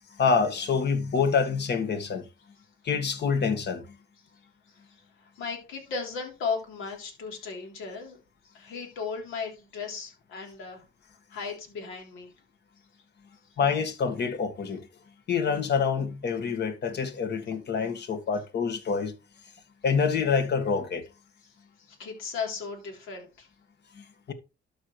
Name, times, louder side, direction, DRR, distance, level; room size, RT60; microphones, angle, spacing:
voice 1, 0.2-2.2 2.8-3.8 13.6-14.8 15.3-19.1 19.8-21.0 24.0-24.3, left 5 dB, 60° left, 1.8 m, -26 dB
voice 2, 5.2-8.2 8.5-10.8 11.3-12.3 21.9-23.5, left 5 dB, 90° left, 3.5 m, -36 dB
12.5 x 5.3 x 3.2 m
cardioid pair, 90°, 20 cm